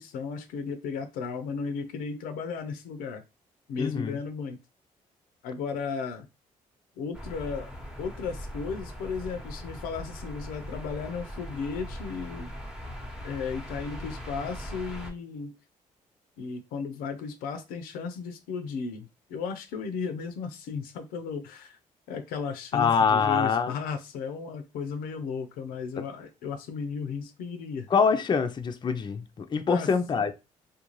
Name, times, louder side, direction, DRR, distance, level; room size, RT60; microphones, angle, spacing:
voice 1, 0.0-3.2 3.7-4.6 5.4-6.3 7.0-7.7 8.0-12.5 13.2-15.5 16.4-21.8 22.1-27.9 29.7-29.9, left 5 dB, 90° left, 0.5 m, -35 dB
voice 2, 3.8-4.2 22.7-23.7 27.9-30.3, left 6 dB, 30° left, 0.4 m, -24 dB
sound 1, 7.1-15.1, equal, 5° right, 0.8 m, -40 dB
2.5 x 2.2 x 3.0 m
supercardioid pair, 70°, 14 cm